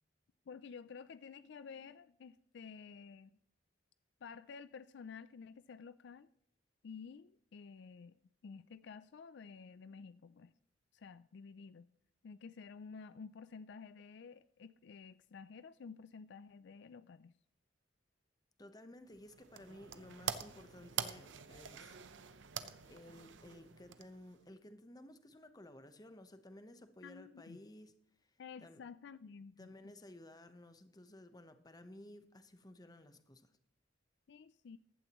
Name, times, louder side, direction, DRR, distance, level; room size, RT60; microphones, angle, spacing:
voice 1, 0.5-3.4 4.2-6.3 6.8-8.2 8.4-10.5 10.9-11.9 12.2-17.3 27.0-27.6 28.4-29.9 34.3-34.8, left 5 dB, 65° left, 0.4 m, -52 dB
voice 2, 18.6-22.0 22.8-27.9 28.2-28.8 29.6-33.5, left 1 dB, 20° left, 1.0 m, -55 dB
sound 1, 19.1-24.4, right 8 dB, 85° right, 0.8 m, -45 dB
15.0 x 11.5 x 3.0 m
head